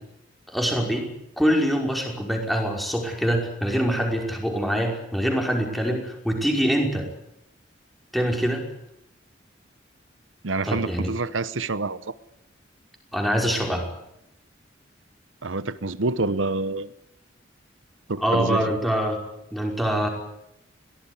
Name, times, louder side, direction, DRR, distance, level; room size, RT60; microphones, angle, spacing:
voice 1, 0.5-1.1 1.4-7.1 8.1-8.6 10.6-11.1 13.1-13.9 18.2-19.2 19.5-20.1, equal, ahead, 1 dB, 5.4 m, -24 dB
voice 2, 10.4-12.0 15.4-16.9 18.1-18.7, right 3 dB, 85° right, 15 dB, 1.0 m, -27 dB
22.5 x 18.0 x 9.8 m, 0.81 s
head